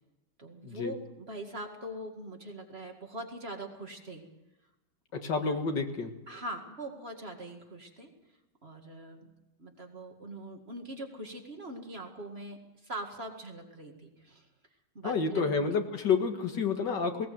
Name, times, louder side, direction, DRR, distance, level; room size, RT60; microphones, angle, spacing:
voice 1, 0.4-4.2 5.1-5.6 6.3-8.1 8.6-9.3 9.6-14.5 14.9-15.5, right 1 dB, 35° right, 3 dB, 2.3 m, -42 dB
voice 2, 5.2-6.1 15.0-17.3, left 5 dB, 90° left, 6 dB, 2.4 m, -29 dB
19.5 x 18.5 x 7.8 m, 0.98 s
omnidirectional pair, 1.9 m